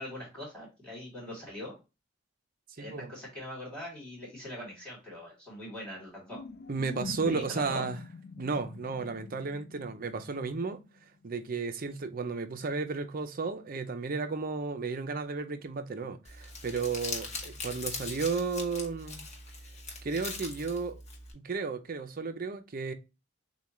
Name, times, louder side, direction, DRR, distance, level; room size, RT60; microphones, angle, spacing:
voice 1, 0.0-1.8 2.8-6.4 7.2-7.8, left 1 dB, 5° left, 2.7 m, -42 dB
voice 2, 2.8-3.2 6.7-8.0 8.4-10.8 11.2-19.2 20.0-21.0 21.3-22.9, right 4 dB, 45° right, 0.5 m, -33 dB
sound 1, 6.3-10.9, left 4 dB, 50° left, 0.4 m, -45 dB
Crumpling crinkling, 16.2-21.3, left 3 dB, 35° left, 1.0 m, -41 dB
6.8 x 2.3 x 3.0 m
head